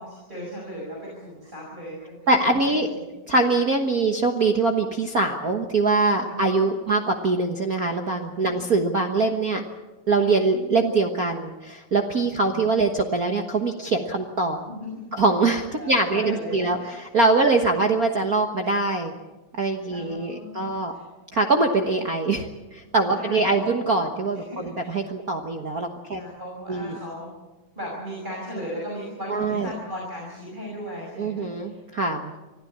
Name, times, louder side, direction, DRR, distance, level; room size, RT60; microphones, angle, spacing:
voice 1, 0.0-2.2 2.6-3.1 6.2-6.9 8.5-8.6 12.3-12.7 14.6-15.1 15.8-17.0 19.9-21.0 23.1-23.7 24.4-25.0 26.1-27.3 27.8-31.8, equal, 15° right, -4 dB, 5.9 m, -37 dB
voice 2, 2.3-2.9 3.3-9.6 10.1-14.6 15.1-19.1 19.6-20.9 21.3-26.2 26.7-27.0 29.3-29.7 31.2-32.3, right 3 dB, 45° right, 4 dB, 1.2 m, -23 dB
25.0 x 15.5 x 8.7 m, 1.1 s
omnidirectional pair, 3.3 m